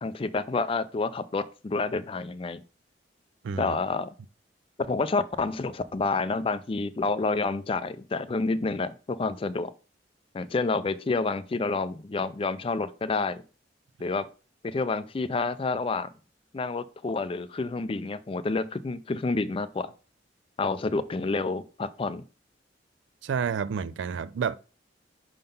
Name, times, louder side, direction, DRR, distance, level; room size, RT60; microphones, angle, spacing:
voice 1, 0.0-2.6 3.6-4.1 4.9-9.7 10.3-13.4 14.0-14.3 14.6-16.1 16.5-19.9 20.6-22.2, left 3 dB, 30° left, 0.4 m, -29 dB
voice 2, 3.4-3.8 23.2-24.5, right 6 dB, 85° right, 0.3 m, -29 dB
5.6 x 3.7 x 5.3 m
head